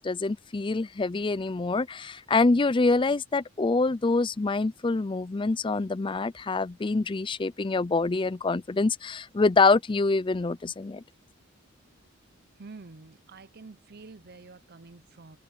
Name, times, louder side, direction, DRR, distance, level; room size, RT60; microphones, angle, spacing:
voice 1, 0.0-11.0, left 3 dB, 25° left, 0.4 m, -25 dB
voice 2, 12.6-15.4, right 3 dB, 45° right, 0.7 m, -48 dB
head